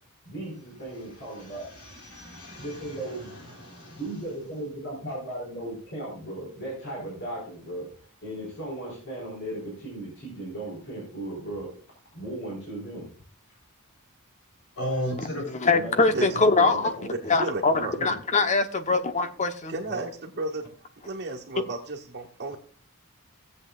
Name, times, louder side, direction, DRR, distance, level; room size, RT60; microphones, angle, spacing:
voice 1, 0.2-1.7 2.6-3.3 3.9-11.7 12.1-13.1 15.7-17.1 17.6-18.1, right 1 dB, 55° left, 4.7 m, -36 dB
voice 2, 0.9-4.0 14.8-15.5 16.3-16.4 19.9-20.0 22.5-22.6, equal, 75° left, 4.1 m, -36 dB
voice 3, 15.6-16.9 17.3-19.7, left 3 dB, 30° left, 0.9 m, -23 dB
voice 4, 17.1-17.9 19.7-20.7 21.0-22.6, right 2 dB, 50° right, 1.6 m, -33 dB
18.0 x 8.0 x 2.4 m
head